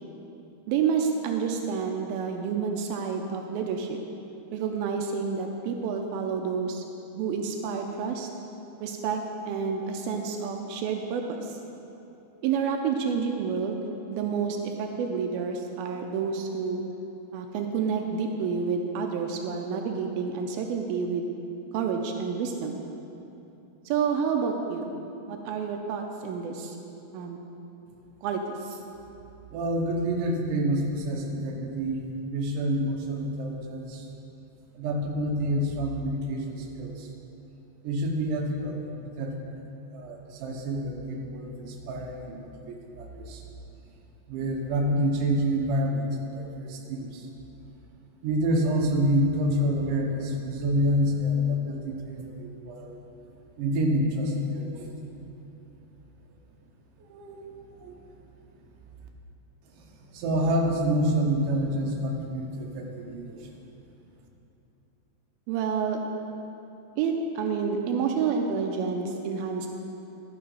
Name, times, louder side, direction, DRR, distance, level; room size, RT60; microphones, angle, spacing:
voice 1, 0.7-3.9 4.5-6.8 7.1-8.3 8.8-9.2 9.5-11.4 12.4-13.8 14.1-16.8 17.3-21.3 21.7-22.7 23.9-24.9 25.3-26.8 27.1-27.4 28.2-28.4 28.7-28.8 65.5-66.0 67.0-69.7, right 6 dB, 85° right, 3 dB, 2.4 m, -29 dB
voice 2, 29.5-34.0 34.8-37.1 37.8-39.4 39.9-43.4 44.3-46.1 46.3-47.3 48.2-53.0 53.6-54.9 57.1-57.5 57.8-57.9 60.1-63.4, equal, 70° right, 1 dB, 2.3 m, -28 dB
12.0 x 5.9 x 5.5 m, 3.0 s
omnidirectional pair, 4.2 m